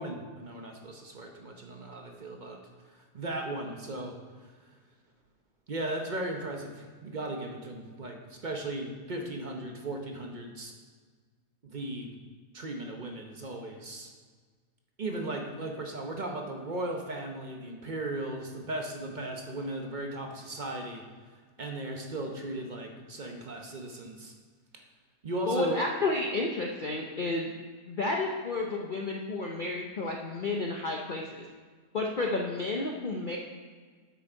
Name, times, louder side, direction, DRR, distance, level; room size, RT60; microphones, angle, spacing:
voice 1, 0.0-2.6 2.9-4.5 5.7-10.7 11.6-12.1 12.5-14.1 15.0-21.0 21.6-24.3 25.2-25.8, right 1 dB, 40° right, 2 dB, 0.7 m, -37 dB
voice 2, 25.5-27.5 27.9-31.4 31.9-33.4, left 2 dB, 55° left, 0 dB, 0.5 m, -31 dB
8.2 x 6.3 x 4.5 m, 1.5 s
omnidirectional pair, 1.6 m